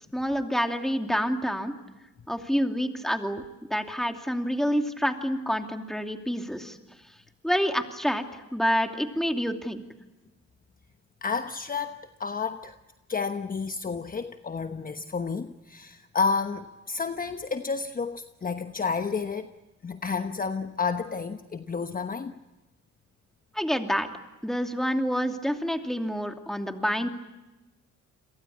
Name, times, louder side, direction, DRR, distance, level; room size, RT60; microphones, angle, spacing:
voice 1, 0.1-1.7 2.3-3.4 3.7-6.8 7.4-9.8 23.5-24.1 24.4-27.1, equal, ahead, 5 dB, 2.7 m, -27 dB
voice 2, 11.2-12.8 13.1-19.5 19.8-22.4, left 5 dB, 30° left, 8 dB, 1.1 m, -31 dB
29.5 x 22.5 x 8.5 m, 1.0 s
cardioid pair, 90°, 30 cm